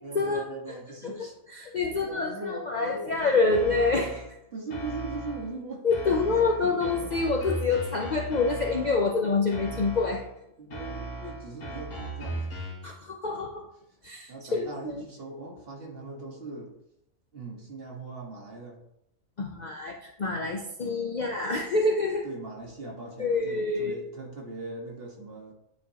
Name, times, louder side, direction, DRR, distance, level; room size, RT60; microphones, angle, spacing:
voice 1, 0.0-1.3 2.0-3.5 4.5-7.1 10.6-12.5 14.3-16.7 17.3-18.8 22.2-25.5, right 2 dB, 40° right, -1 dB, 1.5 m, -40 dB
voice 2, 1.6-4.2 5.8-10.2 12.8-13.6 14.0-15.0 19.4-22.3 23.2-24.0, left 3 dB, 80° left, 1 dB, 0.4 m, -27 dB
sound 1, 3.5-4.3 4.7-5.5 5.9-9.1 9.5-10.3 10.7-12.9, right 2 dB, 60° left, 2.0 m, -37 dB
9.3 x 4.4 x 2.8 m, 0.80 s
omnidirectional pair, 1.6 m